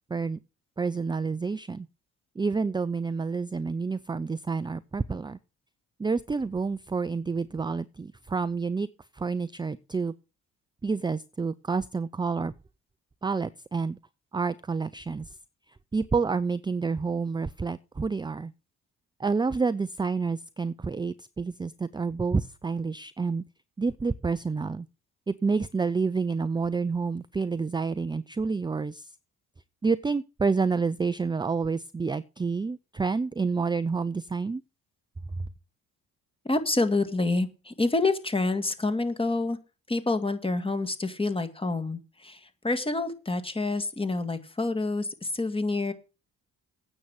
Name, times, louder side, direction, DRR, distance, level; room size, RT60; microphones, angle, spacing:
voice 1, 0.8-1.9 2.4-5.4 6.0-8.9 9.1-10.1 10.8-12.5 13.2-14.0 14.3-15.4 15.9-18.5 19.2-23.4 23.8-24.9 25.3-29.1 29.8-34.6, right 4 dB, 15° right, 14 dB, 0.5 m, -29 dB
voice 2, 36.4-39.6 39.9-45.9, left 2 dB, 20° left, 8 dB, 2.0 m, -28 dB
9.3 x 7.4 x 8.0 m, 0.31 s
cardioid pair, 90°, 30 cm